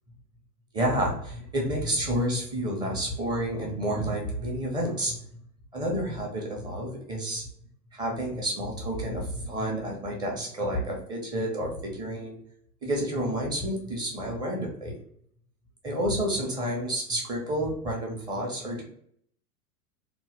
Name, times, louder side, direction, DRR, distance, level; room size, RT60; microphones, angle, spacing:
voice 1, 0.7-5.4 5.7-7.4 7.9-12.4 12.8-15.0 15.8-18.8, right 1 dB, 10° right, -1 dB, 0.5 m, -30 dB
2.9 x 2.1 x 3.1 m, 0.66 s
figure-of-eight pair, 100°, 46 cm